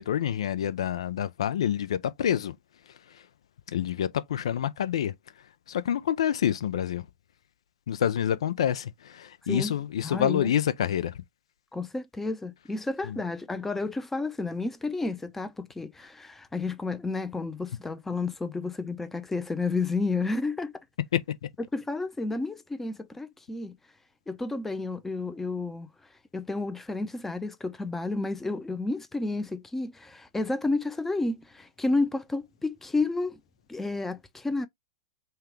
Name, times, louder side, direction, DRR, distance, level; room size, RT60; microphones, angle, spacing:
voice 1, 0.0-2.5 3.7-5.1 5.7-7.0 7.9-11.2 13.0-13.2 21.1-21.2, left 10 dB, 70° left, 0.5 m, -27 dB
voice 2, 10.0-10.5 11.7-20.7 21.7-23.8 24.3-25.9 26.3-33.4 33.7-34.7, left 3 dB, 10° left, 0.6 m, -31 dB
5.6 x 2.3 x 3.3 m
hypercardioid pair, 100°, 3 cm